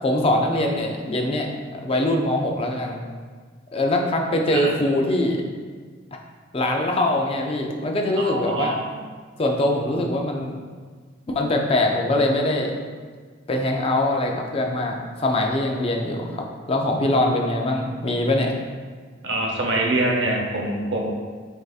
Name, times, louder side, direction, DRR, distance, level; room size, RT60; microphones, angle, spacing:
voice 1, 0.0-3.0 3.7-5.4 6.5-8.8 9.4-10.6 11.3-12.8 13.5-18.5, left 1 dB, 30° left, 1 dB, 0.4 m, -23 dB
voice 2, 8.2-8.8 19.2-21.0, right 2 dB, 70° right, -1 dB, 0.8 m, -24 dB
7.9 x 2.7 x 2.3 m, 1.6 s
head